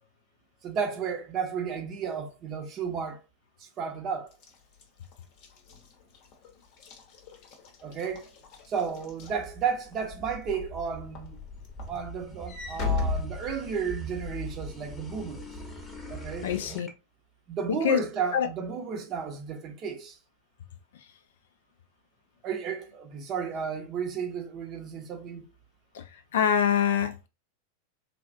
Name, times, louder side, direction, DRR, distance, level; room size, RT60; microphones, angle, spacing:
voice 1, 0.6-3.2 3.6-4.3 7.8-8.3 8.7-11.4 11.9-15.4 16.1-16.5 17.5-20.2 22.4-25.5, right 6 dB, 30° right, 0.7 m, -33 dB
Walk footsteps / Slam, 4.3-10.0 10.5-10.8 11.2-14.2, left 4 dB, 40° left, 0.8 m, -36 dB
sound 1, 8.8-16.9, equal, 5° left, 0.9 m, -42 dB
voice 2, 16.4-16.9 17.7-18.0 18.3-18.5 25.9-26.0 26.3-27.3, left 8 dB, 60° left, 0.4 m, -25 dB
3.3 x 2.4 x 2.5 m
figure-of-eight pair, 90°, 0 cm